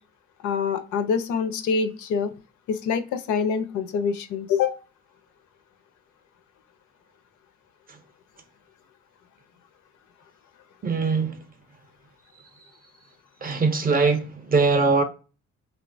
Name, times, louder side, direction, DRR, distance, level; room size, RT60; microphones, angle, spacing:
voice 1, 0.4-2.3 2.7-4.7, left 6 dB, 75° left, 0.5 m, -25 dB
voice 2, 10.8-11.4 13.4-15.0, right 4 dB, 30° right, 0.5 m, -21 dB
3.1 x 2.1 x 2.5 m
cardioid pair, 90°, 30 cm